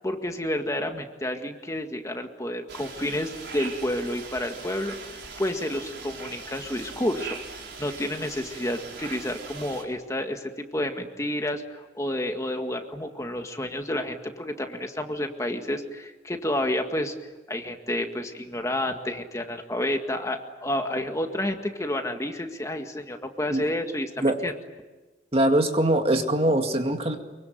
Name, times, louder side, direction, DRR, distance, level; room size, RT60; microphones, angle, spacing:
voice 1, 0.0-7.4 7.8-17.1 17.5-24.5, left 1 dB, 20° left, 5 dB, 1.9 m, -30 dB
sound 1, 2.7-9.8, right 4 dB, 85° right, 4.5 m, -41 dB
voice 2, 25.3-27.2, right 1 dB, 35° right, 5 dB, 2.1 m, -22 dB
24.5 x 24.0 x 9.4 m, 1.2 s
head